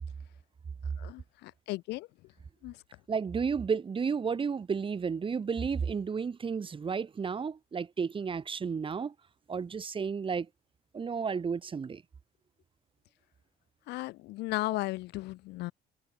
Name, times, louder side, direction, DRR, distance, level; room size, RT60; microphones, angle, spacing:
voice 1, 1.0-2.1 2.6-2.8 13.9-15.7, left 19 dB, 85° left, 1.0 m, -35 dB
voice 2, 3.1-9.1 9.5-10.5 10.9-12.0, right 6 dB, 30° right, 2.0 m, -32 dB
cardioid pair, 110°, 17 cm